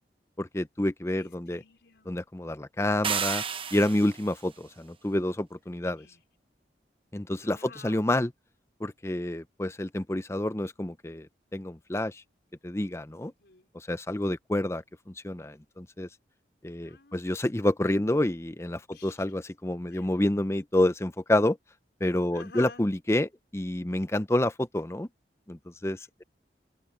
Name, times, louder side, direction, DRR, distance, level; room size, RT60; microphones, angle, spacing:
voice 1, 0.4-1.6 2.1-3.4 3.7-6.1 7.1-8.3 8.8-12.2 12.6-13.3 13.7-16.1 16.6-21.6 22.0-25.1 25.5-26.2, left 1 dB, 15° left, 0.6 m, -28 dB
voice 2, 1.2-2.1 5.8-6.2 7.4-8.0 13.2-13.7 16.8-17.3 18.9-19.2 19.9-20.1 22.3-22.8, left 4 dB, 75° left, 4.0 m, -50 dB
sound 1, 3.0-4.3, right 7 dB, 30° right, 0.8 m, -31 dB
open air
head